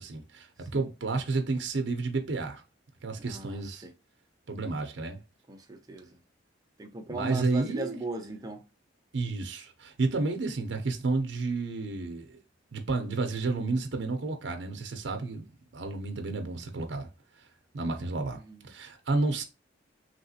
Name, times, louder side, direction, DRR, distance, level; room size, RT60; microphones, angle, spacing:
voice 1, 0.0-0.5 0.7-2.6 3.0-3.8 4.5-5.2 7.1-8.0 9.1-12.4 12.7-15.4 15.7-17.1 17.7-19.4, right 3 dB, 65° right, 0.6 m, -31 dB
voice 2, 3.2-3.9 5.5-6.2 6.8-8.6 17.8-18.7, right 2 dB, 20° right, 0.5 m, -39 dB
3.2 x 2.8 x 2.7 m
head